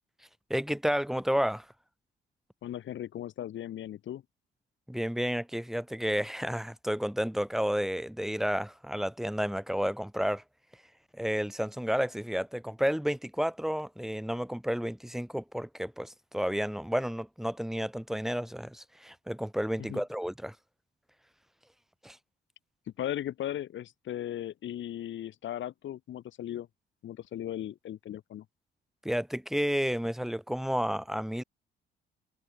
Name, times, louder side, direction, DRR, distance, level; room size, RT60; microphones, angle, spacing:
voice 1, 0.5-1.7 4.9-10.4 11.1-20.5 22.0-22.2 29.0-31.4, equal, ahead, 6.7 m, -31 dB
voice 2, 2.6-4.2 19.9-20.0 23.0-26.7 27.0-28.4, left 11 dB, 75° left, 4.6 m, -37 dB
cardioid pair, 90°, 20 cm